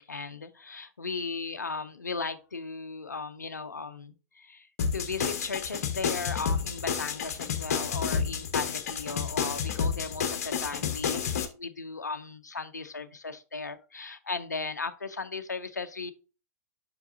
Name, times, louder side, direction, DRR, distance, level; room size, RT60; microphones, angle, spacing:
voice 1, 0.0-4.7 4.9-16.1, left 4 dB, 85° left, 10 dB, 0.6 m, -36 dB
sound 1, 4.8-11.4, left 6 dB, 60° left, 1.1 m, -30 dB
5.7 x 4.7 x 3.7 m, 0.34 s
figure-of-eight pair, 105°, 9 cm